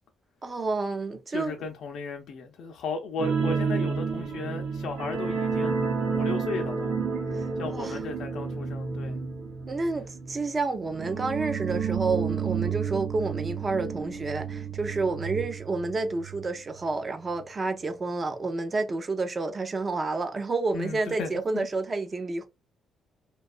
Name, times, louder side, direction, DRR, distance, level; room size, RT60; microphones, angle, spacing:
voice 1, 0.4-1.6 7.7-8.0 9.7-22.4, right 3 dB, 25° right, 0.4 m, -29 dB
voice 2, 1.3-6.9 7.6-9.2 20.7-21.7, left 4 dB, 55° left, 0.4 m, -35 dB
sound 1, 3.2-16.4 16.7-16.9 17.3-17.4, right 5 dB, 60° right, 0.7 m, -31 dB
2.7 x 2.3 x 2.4 m
cardioid pair, 155°, 0 cm